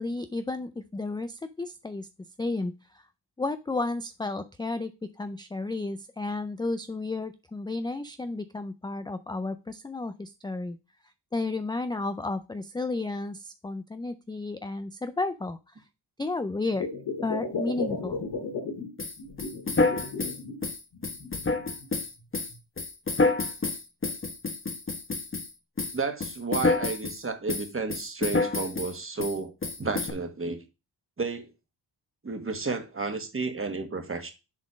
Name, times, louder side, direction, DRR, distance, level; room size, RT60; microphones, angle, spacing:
voice 1, 0.0-2.1 2.4-3.0 3.4-4.9 5.2-10.8 11.3-15.8 16.2-16.9 17.2-18.2, left 3 dB, 10° left, 0.4 m, -32 dB
sound 1, 16.7-18.9 19.2-20.6 20.9-21.9 22.5-22.6, left 3 dB, 75° left, 3.2 m, -34 dB
sound 2, 19.0-25.5 25.8-27.2 27.5-28.9 29.2-29.4 29.6-30.1, left 3 dB, 30° left, 1.3 m, -28 dB
voice 2, 25.9-29.5 29.8-30.6 31.2-31.5 32.2-34.3, right 4 dB, 30° right, 1.7 m, -32 dB
7.4 x 4.1 x 5.1 m
cardioid pair, 100°, 43 cm